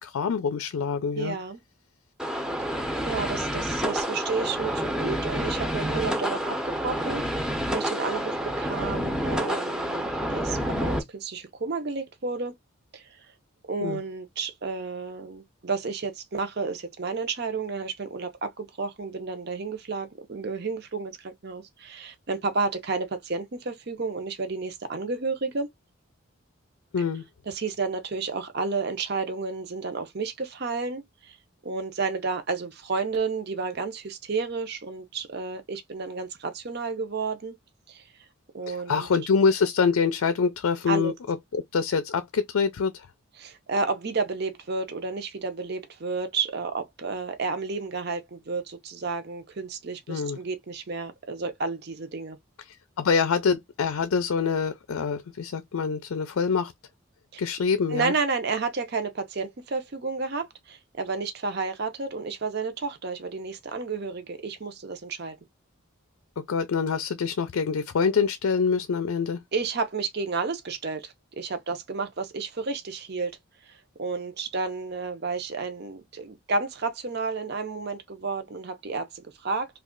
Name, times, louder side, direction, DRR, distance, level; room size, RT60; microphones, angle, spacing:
voice 1, 0.0-1.4 13.8-14.0 26.9-27.2 38.7-43.1 50.1-50.4 52.7-56.7 57.4-58.1 66.4-69.4, left 5 dB, 85° left, 0.4 m, -25 dB
voice 2, 1.1-1.6 2.6-12.6 12.9-13.3 13.7-25.7 27.5-31.4 31.6-37.6 37.9-38.0 38.5-39.1 40.9-41.1 43.4-52.4 57.3-57.4 57.9-65.4 69.5-73.3 73.6-79.7, right 4 dB, 50° right, 0.6 m, -31 dB
sound 1, 2.2-11.0, equal, 5° right, 0.6 m, -28 dB
3.1 x 2.4 x 3.6 m
head